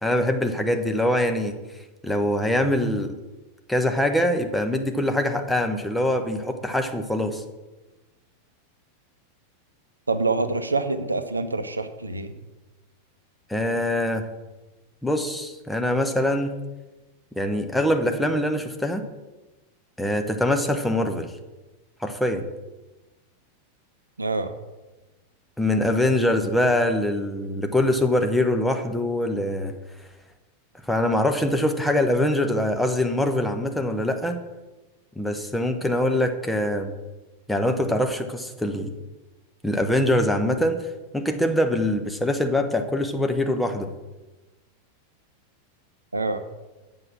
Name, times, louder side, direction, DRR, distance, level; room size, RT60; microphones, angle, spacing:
voice 1, 0.0-1.6 2.0-3.1 3.7-7.4 13.5-14.3 15.0-16.5 17.3-19.0 20.0-21.3 22.0-22.5 25.6-29.7 30.9-34.4 35.2-36.9 37.5-38.9 39.6-40.9 41.1-43.9, left 1 dB, 5° left, 5 dB, 0.9 m, -23 dB
voice 2, 10.1-12.3 24.2-24.5 46.1-46.4, right 3 dB, 80° right, 10 dB, 0.6 m, -26 dB
7.9 x 5.5 x 7.5 m, 1.1 s
figure-of-eight pair, 90°, 0 cm